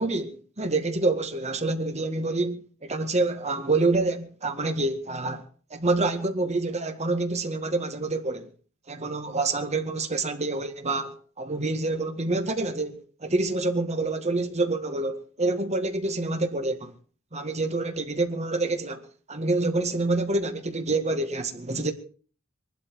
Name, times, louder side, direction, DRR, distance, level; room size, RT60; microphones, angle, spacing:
voice 1, 0.0-5.4 5.7-8.5 8.9-16.9 17.3-21.9, right 2 dB, 30° right, 1.8 m, -27 dB
21.5 x 12.0 x 4.7 m
head